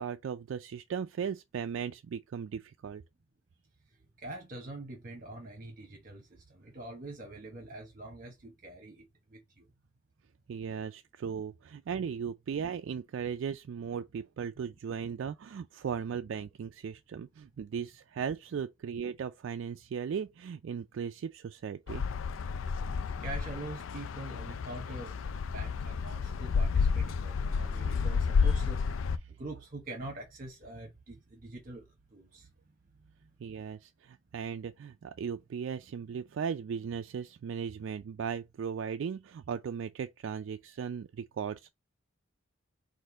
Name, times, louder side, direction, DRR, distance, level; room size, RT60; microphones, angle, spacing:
voice 1, 0.0-3.0 10.5-22.0 33.4-41.7, right 7 dB, 70° right, 0.3 m, -37 dB
voice 2, 3.9-9.7 23.1-28.8 29.3-32.5 33.2-33.3, right 2 dB, 45° right, 1.0 m, -45 dB
sound 1, 21.9-29.2, left 5 dB, 85° left, 0.4 m, -31 dB
4.3 x 2.6 x 4.7 m
head